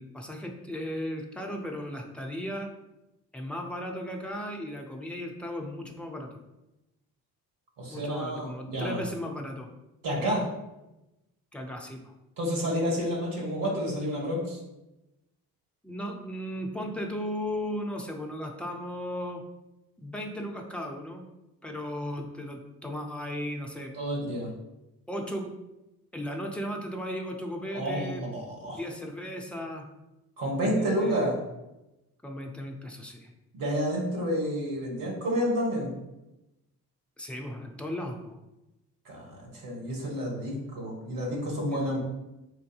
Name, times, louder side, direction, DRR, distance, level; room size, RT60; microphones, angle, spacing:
voice 1, 0.0-2.7 3.3-6.4 7.9-9.7 11.5-12.1 15.8-19.4 20.0-21.2 21.6-24.0 25.1-25.5 26.1-28.2 28.8-29.9 30.8-31.3 32.2-33.3 37.2-38.4 41.7-41.9, equal, 5° left, 1 dB, 0.5 m, -36 dB
voice 2, 7.8-9.0 10.0-10.4 12.4-14.6 23.9-24.5 27.7-28.8 30.4-31.4 33.5-35.9 39.0-42.0, equal, 45° right, -2 dB, 1.4 m, -30 dB
4.4 x 2.6 x 2.3 m, 0.96 s
figure-of-eight pair, 40°, 46 cm